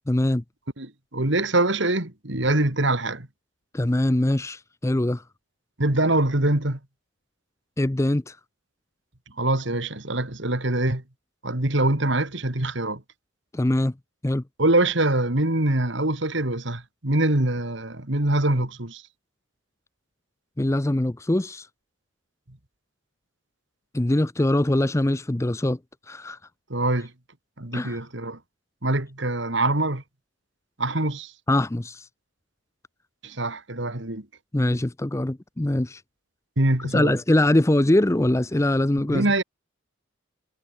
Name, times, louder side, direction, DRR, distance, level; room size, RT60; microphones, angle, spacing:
voice 1, 0.1-0.4 3.7-5.2 7.8-8.4 13.5-13.9 14.2-14.4 20.6-21.7 23.9-25.8 26.1-26.4 27.7-28.0 31.5-32.1 34.5-36.0 36.9-39.2, left 1 dB, 15° left, 0.5 m, -22 dB
voice 2, 0.8-3.3 5.8-6.8 9.4-11.0 11.4-13.0 14.6-19.0 26.7-27.1 27.6-28.4 28.8-30.0 30.8-31.3 33.2-34.3 36.6-37.2 39.1-39.4, right 2 dB, 60° right, 2.5 m, -24 dB
head